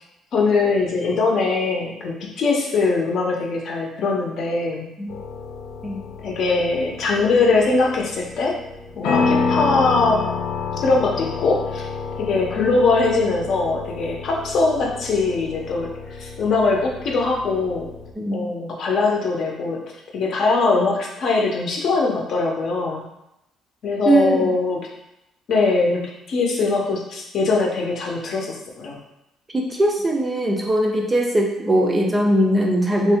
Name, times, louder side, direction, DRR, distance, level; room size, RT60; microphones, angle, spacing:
voice 1, 0.3-4.9 6.2-8.5 9.0-10.2 10.8-11.9 12.2-15.9 16.2-17.9 18.3-19.8 20.1-23.0 23.8-24.9 25.5-26.0 26.3-29.0, left 3 dB, 55° left, -1 dB, 0.7 m, -21 dB
sound 1, 5.1-18.1, left 5 dB, 85° left, 0.4 m, -29 dB
voice 2, 18.2-18.5 24.1-24.5 29.5-33.2, right 1 dB, 15° right, 0 dB, 0.4 m, -20 dB
2.9 x 2.6 x 3.5 m, 0.88 s
cardioid pair, 135°, 0 cm